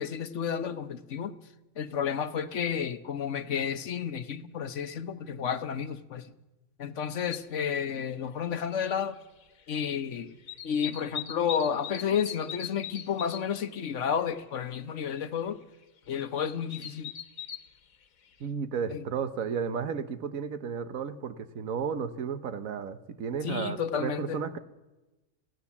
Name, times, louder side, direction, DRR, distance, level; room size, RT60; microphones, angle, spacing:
voice 1, 0.0-1.4 1.8-6.3 6.8-9.2 9.7-10.3 10.6-15.6 16.1-17.1 18.9-19.0 23.4-24.4, left 7 dB, 65° left, 11 dB, 1.2 m, -31 dB
sound 1, 7.3-7.4 8.8-8.9 9.2-10.0 10.3-13.6 14.0-14.1 14.2-14.6 15.1-15.2 16.1-17.7 18.3-18.4, left 8 dB, 80° left, 1.5 m, -40 dB
voice 2, 18.4-24.6, right 6 dB, 80° right, 11 dB, 1.4 m, -33 dB
27.5 x 15.5 x 7.2 m, 1.1 s
omnidirectional pair, 1.4 m